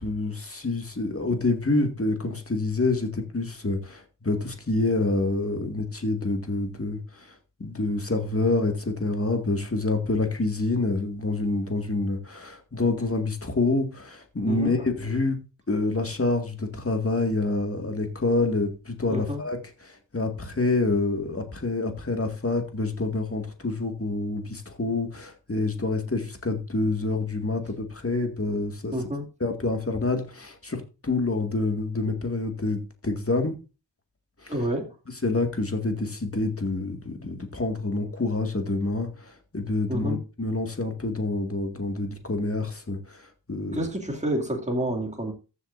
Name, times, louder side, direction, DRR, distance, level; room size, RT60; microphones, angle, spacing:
voice 1, 0.0-7.3 7.6-15.4 15.7-19.6 19.8-28.9 29.4-33.6 34.4-34.5 35.2-43.9, left 2 dB, 35° left, 2.1 m, -27 dB
voice 2, 19.1-19.4 28.9-29.3 34.5-34.9 39.9-40.2 43.7-45.3, right 1 dB, 15° right, 2.5 m, -29 dB
14.0 x 7.7 x 2.6 m
wide cardioid pair, 95°, 42 cm